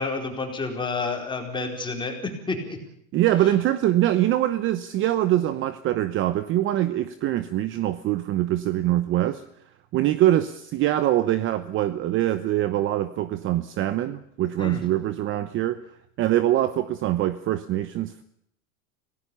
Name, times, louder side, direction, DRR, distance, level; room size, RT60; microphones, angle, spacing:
voice 1, 0.0-2.1 2.5-2.8 14.6-14.8, left 3 dB, 10° left, 3 dB, 4.5 m, -29 dB
voice 2, 3.1-9.4 9.9-15.8 16.2-18.2, right 13 dB, 30° right, 13 dB, 0.9 m, -23 dB
26.5 x 18.5 x 7.0 m, 0.72 s
supercardioid pair, 150°, 42 cm